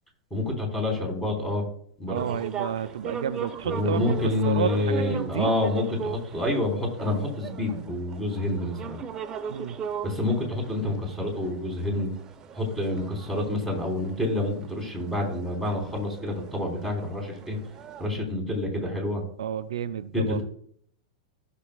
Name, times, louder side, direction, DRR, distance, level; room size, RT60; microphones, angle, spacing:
voice 1, 0.3-1.6 2.0-2.3 3.6-9.0 10.0-12.1 12.5-17.6 18.0-19.2 20.1-20.4, left 2 dB, 5° left, 0 dB, 4.0 m, -28 dB
sound 1, 2.1-18.1, right 7 dB, 25° right, 0.8 m, -39 dB
voice 2, 2.1-4.1 4.4-5.5 9.5-9.8 19.4-20.4, right 8 dB, 65° right, 13 dB, 0.4 m, -30 dB
15.0 x 6.9 x 2.4 m, 0.63 s
figure-of-eight pair, 95°, 3 cm